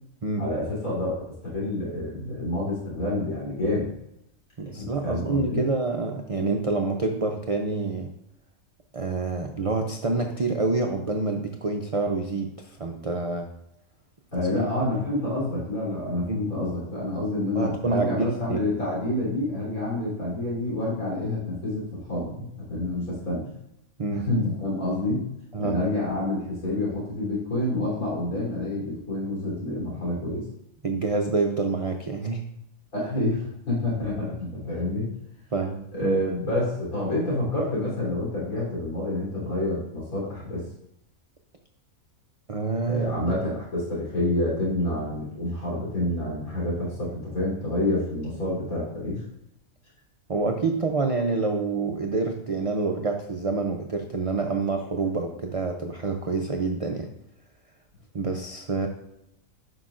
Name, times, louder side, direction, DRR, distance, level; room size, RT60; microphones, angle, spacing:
voice 1, 0.4-3.9 4.8-5.6 14.3-23.5 24.1-25.2 25.6-30.5 32.9-35.1 35.9-40.6 42.9-49.2, left 1 dB, 90° left, -7 dB, 3.8 m, -28 dB
voice 2, 4.6-8.1 8.9-13.5 14.4-14.7 16.3-16.4 17.5-18.6 24.0-24.3 25.5-25.8 30.8-32.4 35.5-36.2 42.5-43.4 50.3-57.1 58.1-58.9, right 3 dB, 60° right, 3 dB, 0.3 m, -27 dB
11.5 x 5.6 x 2.5 m, 0.80 s
omnidirectional pair, 1.5 m